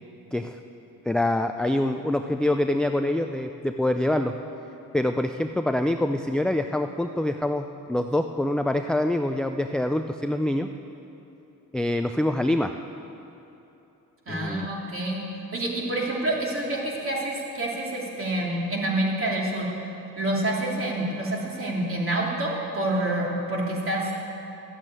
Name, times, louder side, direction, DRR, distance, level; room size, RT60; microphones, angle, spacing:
voice 1, 1.1-4.3 4.9-10.7 11.7-12.7 14.3-14.7, left 1 dB, ahead, 6 dB, 0.4 m, -25 dB
voice 2, 14.3-15.2 15.5-19.7 20.2-24.1, right 1 dB, 40° right, -3 dB, 3.2 m, -27 dB
12.5 x 8.2 x 8.9 m, 3.0 s
cardioid pair, 100°, 34 cm